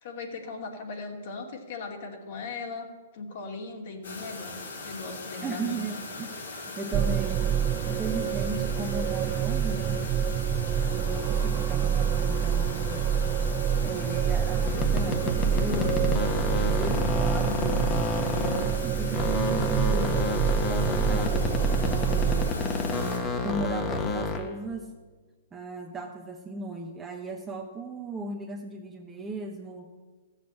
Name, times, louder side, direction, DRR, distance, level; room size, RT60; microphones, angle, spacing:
voice 1, 0.0-2.9 3.1-4.6 4.8-5.9, left 4 dB, 55° left, 1 dB, 2.4 m, -38 dB
sound 1, 4.0-23.2, left 3 dB, 80° left, 3.6 m, -40 dB
voice 2, 5.4-7.5 7.8-10.1 10.9-13.1 13.8-16.0 16.6-17.9 18.2-22.6 22.9-24.9 25.5-29.9, right 3 dB, 15° right, 0 dB, 1.1 m, -36 dB
sound 2, 6.9-22.5, right 8 dB, 30° right, 0.3 m, -27 dB
sound 3, 14.6-18.8 19.1-24.5, left 4 dB, 25° left, 1.4 m, -29 dB
14.0 x 7.4 x 7.9 m, 1.4 s
hypercardioid pair, 130°, 0 cm